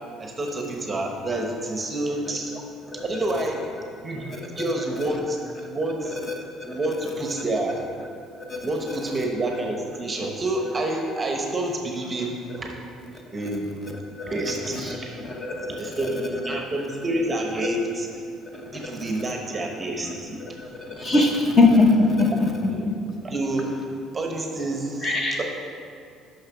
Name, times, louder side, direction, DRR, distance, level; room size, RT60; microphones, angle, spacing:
voice 1, 0.2-2.5 3.0-3.6 4.0-6.2 6.6-7.8 8.6-12.3 12.6-12.7 13.3-13.8 14.3-15.2 15.7-18.1 18.7-20.4 22.7-22.9 23.2-23.7 24.1-25.4, right 2 dB, 20° right, 1 dB, 0.8 m, -28 dB
voice 2, 15.2-15.7 21.0-22.3 25.0-25.4, left 3 dB, 25° left, 1 dB, 0.9 m, -19 dB
6.5 x 5.8 x 5.9 m, 2.3 s
cardioid pair, 145°, 0 cm